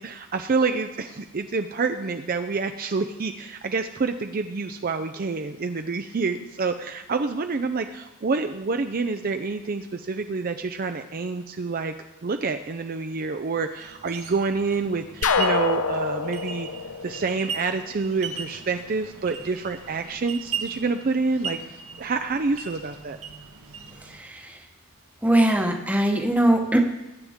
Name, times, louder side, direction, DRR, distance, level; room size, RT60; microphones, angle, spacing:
voice 1, 0.0-11.9 12.2-16.7 17.0-23.2, right 4 dB, 40° right, 7 dB, 0.5 m, -27 dB
sound 1, 13.8-24.2, right 6 dB, 75° right, 1.4 m, -38 dB
sound 2, 15.2-18.0, left 5 dB, 70° left, 0.7 m, -26 dB
voice 2, 24.1-24.6 25.2-26.8, right 1 dB, 5° right, 3 dB, 1.0 m, -21 dB
21.5 x 9.7 x 3.6 m, 1.0 s
head